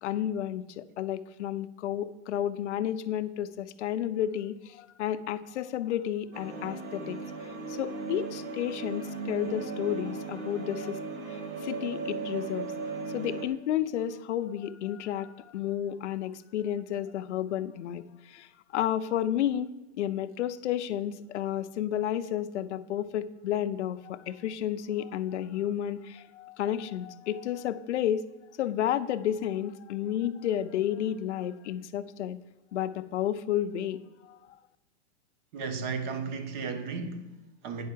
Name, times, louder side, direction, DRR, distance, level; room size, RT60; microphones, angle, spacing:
voice 1, 0.0-11.0 11.3-12.7 13.1-18.0 18.3-18.5 18.7-19.7 20.0-28.2 28.6-32.4 32.7-34.0 34.3-34.4, left 11 dB, 85° left, 0.7 m, -31 dB
sound 1, 6.3-13.5, right 4 dB, 80° right, 2.0 m, -37 dB
voice 2, 35.5-37.9, right 5 dB, 40° right, 1.2 m, -35 dB
9.5 x 5.6 x 7.4 m
supercardioid pair, 165°, 34 cm